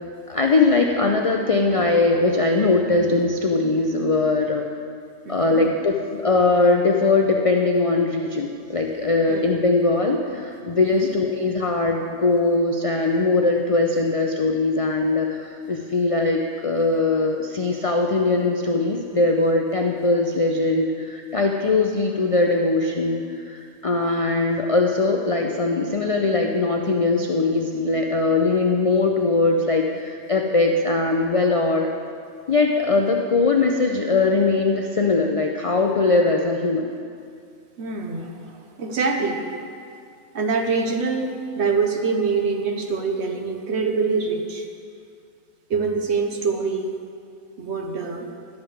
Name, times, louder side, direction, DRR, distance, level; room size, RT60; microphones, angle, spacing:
voice 1, 0.3-4.7 5.3-31.9 32.5-36.9, left 3 dB, 65° left, 2 dB, 0.3 m, -21 dB
voice 2, 5.2-5.6 9.3-9.5 10.9-11.1 37.8-39.4 40.3-44.7 45.7-46.9 47.6-48.3, right 4 dB, 55° right, 3 dB, 1.1 m, -25 dB
11.5 x 5.2 x 7.2 m, 2.3 s
omnidirectional pair, 1.4 m